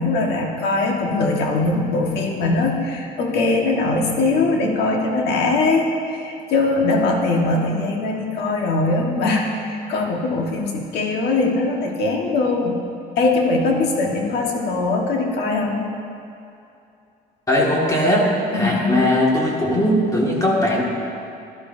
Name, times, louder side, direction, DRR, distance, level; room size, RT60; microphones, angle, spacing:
voice 1, 0.0-12.8 13.2-15.8 18.5-19.0, left 3 dB, 80° left, 1 dB, 1.5 m, -21 dB
voice 2, 17.5-18.3 18.5-20.8, left 1 dB, 20° left, -3 dB, 2.0 m, -19 dB
12.0 x 12.0 x 2.7 m, 2.6 s
cardioid pair, 110°, 17 cm